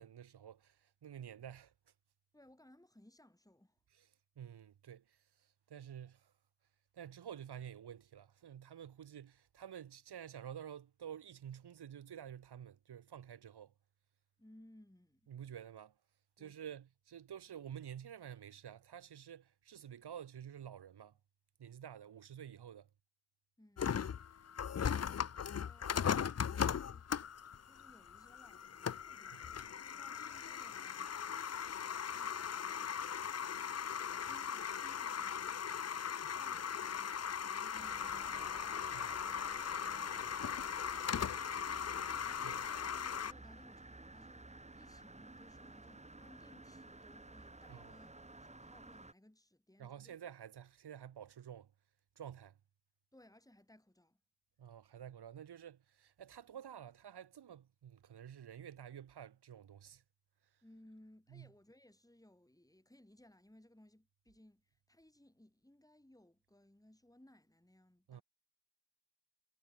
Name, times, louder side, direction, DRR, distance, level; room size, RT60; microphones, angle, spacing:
voice 1, 0.0-1.7 4.0-4.1 4.4-6.3 6.9-13.7 15.3-15.9 16.4-21.2 21.6-22.9 29.3-29.4 38.9-39.1 42.4-42.6 47.7-48.0 49.8-51.7 52.2-52.6 54.6-60.0 61.3-61.5 68.1-68.2, right 9 dB, 75° right, 0.8 m, -50 dB
voice 2, 2.3-3.8 14.4-15.3 16.4-16.8 23.6-24.0 24.7-27.1 27.6-31.8 32.1-33.7 34.1-37.1 37.4-39.3 43.2-48.1 48.4-50.2 53.1-54.2 60.6-68.2, left 1 dB, 10° left, 3.8 m, -64 dB
sound 1, 23.8-43.3, left 8 dB, 40° left, 0.5 m, -39 dB
sound 2, 37.7-49.1, right 2 dB, 15° right, 1.2 m, -54 dB
cardioid pair, 60°, 40 cm